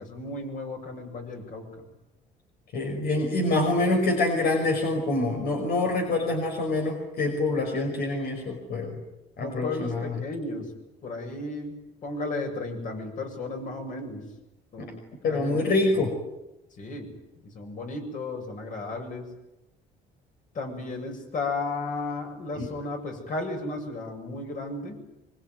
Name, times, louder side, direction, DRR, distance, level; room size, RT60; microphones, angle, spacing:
voice 1, 0.0-1.8 9.4-10.7 11.0-14.3 14.7-16.1 16.8-17.1 17.4-19.3 20.5-25.0, left 2 dB, 50° left, 4 dB, 7.8 m, -34 dB
voice 2, 2.7-9.0 9.4-9.9 14.8-14.9 15.2-16.1 22.6-22.7, left 2 dB, 65° left, 3 dB, 5.8 m, -26 dB
24.5 x 24.5 x 9.6 m, 0.94 s
cardioid pair, 110°, 17 cm